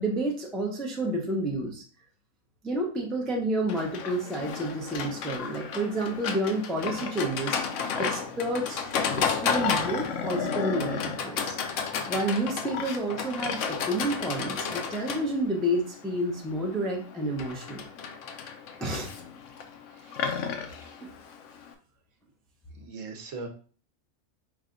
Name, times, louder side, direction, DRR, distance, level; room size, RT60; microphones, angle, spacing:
voice 1, 0.0-1.8 2.6-7.6 7.9-8.8 9.2-11.6 12.1-17.9 18.8-19.1 21.0-21.1, right 1 dB, ahead, -1 dB, 0.4 m, -30 dB
Livestock farm animals working animals, 3.7-21.7, left 6 dB, 65° left, 0.8 m, -32 dB
voice 2, 19.9-20.7 22.8-23.5, right 4 dB, 65° right, 3 dB, 1.1 m, -41 dB
4.9 x 2.3 x 3.8 m, 0.41 s
omnidirectional pair, 1.5 m